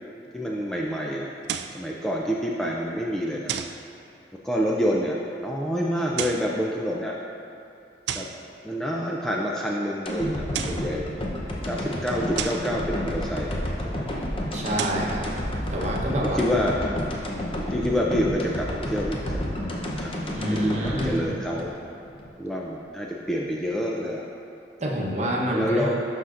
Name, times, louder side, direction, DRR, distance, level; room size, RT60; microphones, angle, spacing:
voice 1, 0.3-1.3 1.7-3.6 4.4-7.2 8.1-8.3 8.6-11.2 11.7-13.6 13.8-14.1 16.3-16.8 17.3-19.4 20.0-21.7 22.4-24.3 25.5-25.9, equal, 5° left, -3 dB, 0.4 m, -27 dB
sound 1, 1.4-1.8 3.5-3.8 6.0-6.5 8.1-8.4 10.3-10.9 12.4-12.7 14.6-15.1, right 8 dB, 65° right, 0.3 m, -32 dB
sound 2, 10.0-22.3 22.6-22.7, left 1 dB, 30° left, 0.7 m, -30 dB
voice 2, 14.5-15.3 15.7-16.4 20.3-21.3 24.8-25.9, equal, 40° right, -3 dB, 1.0 m, -27 dB
12.0 x 5.6 x 2.5 m, 2.6 s
head